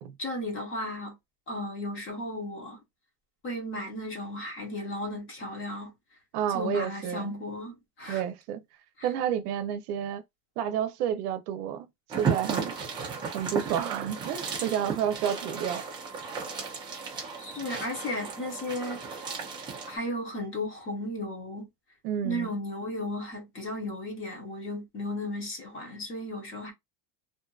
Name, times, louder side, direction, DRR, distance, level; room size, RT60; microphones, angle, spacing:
voice 1, 0.2-1.1 1.5-2.8 3.4-5.9 6.5-8.2 9.0-9.1 17.4-19.3 19.9-21.7 22.2-26.7, left 1 dB, 25° left, 1.0 m, -35 dB
voice 2, 6.3-7.3 8.1-8.6 9.0-10.2 10.6-11.9 12.1-12.7 13.3-15.8 22.0-22.6, right 9 dB, 65° right, 0.7 m, -30 dB
sound 1, 12.1-20.0, right 5 dB, 10° right, 0.4 m, -34 dB
2.7 x 2.5 x 2.3 m
supercardioid pair, 155°, 50 cm